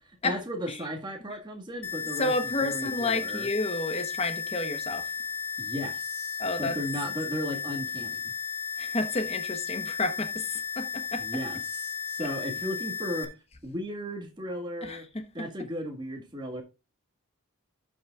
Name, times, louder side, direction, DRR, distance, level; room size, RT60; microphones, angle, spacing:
voice 1, 0.2-3.5 5.6-8.2 11.2-13.3 13.6-15.1 15.3-16.6, equal, 20° right, 1.7 m, -35 dB
sound 1, 1.8-13.2, left 6 dB, 85° left, 1.7 m, -34 dB
voice 2, 2.2-5.1 6.4-6.8 8.8-11.4 12.2-12.3 14.8-15.7, left 2 dB, 25° left, 1.0 m, -31 dB
12.0 x 6.2 x 2.4 m
head